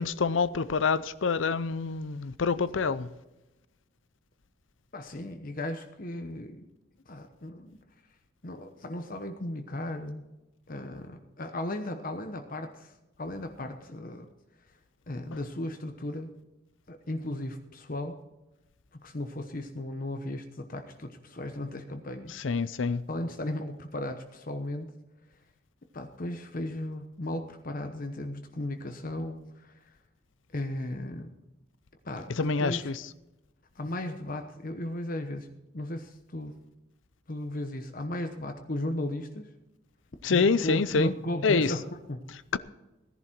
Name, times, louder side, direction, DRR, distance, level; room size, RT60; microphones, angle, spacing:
voice 1, 0.0-3.1 22.3-23.0 32.4-33.0 40.2-41.1 41.4-41.7 42.5-42.6, left 4 dB, 85° left, 0.6 m, -26 dB
voice 2, 4.9-6.7 7.1-7.8 8.4-10.2 10.7-12.9 13.2-14.3 15.1-16.3 16.9-18.2 18.9-22.3 23.1-24.9 25.9-29.8 30.5-31.3 32.0-32.9 33.8-36.6 37.3-39.5 40.3-42.2, left 1 dB, 45° left, 1.0 m, -36 dB
16.5 x 11.0 x 4.5 m
head